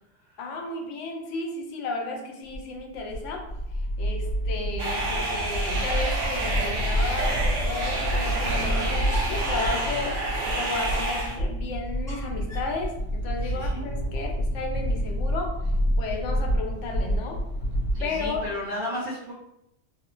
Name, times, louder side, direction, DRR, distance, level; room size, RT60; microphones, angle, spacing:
voice 1, 0.4-17.4 18.0-18.4, left 3 dB, 75° left, 2 dB, 0.9 m, -33 dB
sound 1, 2.5-18.5, equal, 40° left, 1.0 m, -28 dB
sound 2, 4.8-11.4, right 2 dB, 75° right, 0.9 m, -29 dB
sound 3, 6.2-6.7 7.0-7.1 7.7-8.1 9.1-9.5 10.9-11.5 12.1-12.8, right 1 dB, 5° left, 0.6 m, -41 dB
voice 2, 13.4-13.8 17.9-19.3, left 1 dB, 55° right, -10 dB, 0.9 m, -34 dB
3.0 x 2.1 x 2.4 m, 0.83 s
omnidirectional pair, 1.3 m